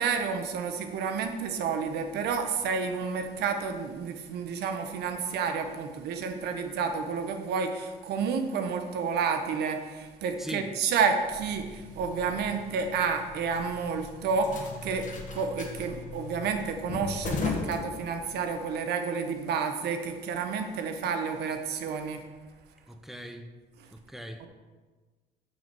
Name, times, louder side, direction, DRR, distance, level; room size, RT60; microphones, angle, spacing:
voice 1, 0.0-22.2, right 5 dB, 75° right, 6 dB, 1.2 m, -30 dB
voice 2, 10.4-10.7 22.9-23.5 23.9-24.5, equal, ahead, 6 dB, 0.9 m, -40 dB
sound 1, 11.2-18.6, left 4 dB, 50° left, 1.6 m, -38 dB
7.7 x 5.9 x 6.2 m, 1.3 s
cardioid pair, 110°, 17 cm